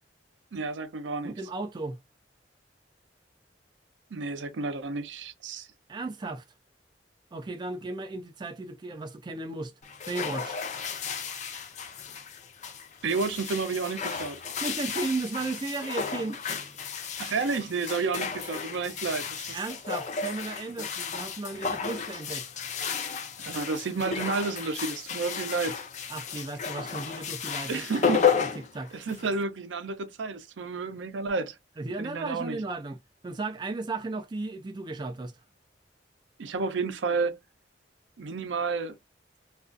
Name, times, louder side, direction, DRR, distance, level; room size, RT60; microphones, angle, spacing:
voice 1, 0.5-1.3 4.1-5.7 13.0-14.4 17.2-19.6 20.8-20.9 23.4-25.8 27.7-28.5 28.9-31.6 32.0-32.6 36.4-37.4 38.2-38.9, right 4 dB, 80° right, 0.5 m, -31 dB
voice 2, 1.2-2.0 5.9-6.4 7.3-9.7 10.1-10.6 14.6-16.5 19.5-22.5 26.1-28.5 28.7-28.9 31.8-35.4, right 3 dB, 25° right, 0.3 m, -35 dB
sound 1, 9.8-29.4, left 6 dB, 40° left, 0.4 m, -33 dB
2.4 x 2.3 x 2.4 m
head